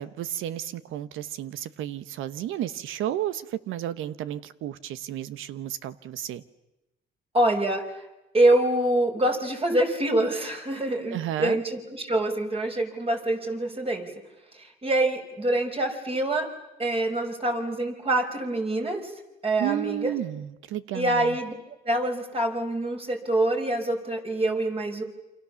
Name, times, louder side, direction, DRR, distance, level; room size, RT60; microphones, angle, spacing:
voice 1, 0.0-6.4 11.0-11.6 19.6-21.4, right 12 dB, 85° right, 14 dB, 1.1 m, -32 dB
voice 2, 7.3-8.0 8.3-14.1 14.5-16.5 16.8-19.1 19.4-20.1 20.9-21.5 21.8-25.0, right 1 dB, 30° right, 3 dB, 5.3 m, -25 dB
28.5 x 26.5 x 7.1 m, 0.98 s
cardioid pair, 90°, 20 cm